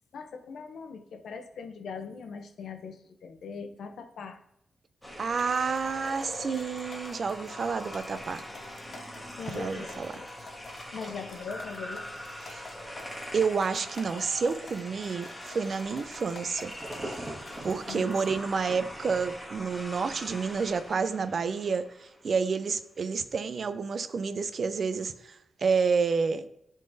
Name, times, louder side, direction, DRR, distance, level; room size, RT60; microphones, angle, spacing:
voice 1, 0.1-4.4 9.4-10.3 10.9-12.1 17.9-18.4, left 5 dB, 85° left, 0.7 m, -41 dB
sound 1, 5.0-22.3, equal, 5° left, 1.4 m, -43 dB
voice 2, 5.2-8.4 9.5-10.1 12.5-12.6 13.3-16.7 17.0-17.3 17.6-26.4, right 5 dB, 55° right, 0.5 m, -29 dB
sound 2, 5.3-18.4, left 3 dB, 55° left, 0.9 m, -50 dB
Insect / Thunder / Rain, 16.4-20.5 21.0-21.1, right 1 dB, 20° right, 1.5 m, -43 dB
10.5 x 3.8 x 2.7 m
wide cardioid pair, 120°, 0 cm